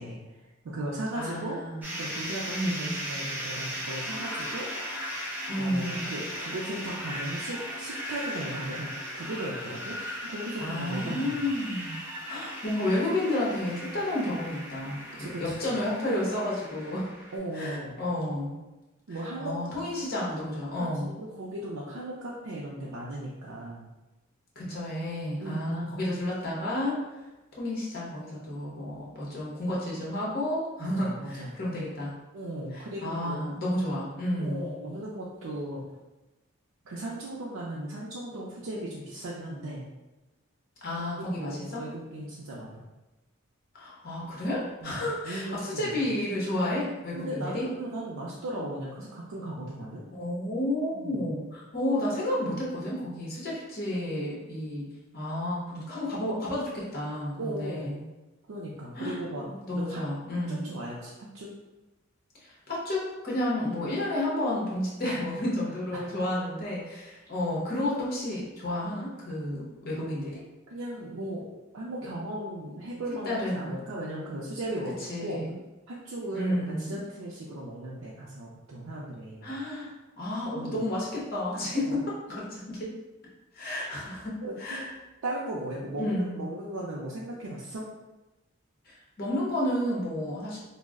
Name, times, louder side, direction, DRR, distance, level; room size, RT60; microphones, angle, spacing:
voice 1, 0.0-1.6 2.0-4.7 5.6-10.0 10.2-11.4 15.1-15.5 17.3-18.0 19.1-19.5 20.8-23.9 25.4-25.9 30.8-31.6 32.3-33.4 34.4-35.8 36.9-39.8 41.0-41.1 41.3-42.8 44.8-46.1 47.1-50.0 50.9-51.2 57.4-57.9 58.5-59.5 59.7-60.0 60.5-61.5 65.0-65.2 65.9-66.0 70.7-75.4 75.9-79.5 80.5-80.8 81.7-82.0 84.4-84.8 85.2-87.9, right 1 dB, 90° right, -5 dB, 0.4 m, -37 dB
voice 2, 1.1-1.9 2.5-3.0 5.5-6.1 10.6-12.0 12.3-17.1 17.5-18.6 19.4-21.1 24.6-27.0 27.6-32.1 32.7-34.6 40.8-41.8 43.7-47.7 50.1-54.9 55.1-58.0 58.9-59.2 59.5-60.7 62.4-70.4 73.2-73.7 75.0-75.5 76.3-77.0 79.4-79.9 80.2-82.9 83.5-84.9 86.0-86.4 88.8-90.6, left 1 dB, 50° left, -5 dB, 0.8 m, -31 dB
sound 1, 1.8-17.4, equal, 10° right, 0.4 m, -37 dB
2.3 x 2.0 x 3.5 m, 1.1 s
head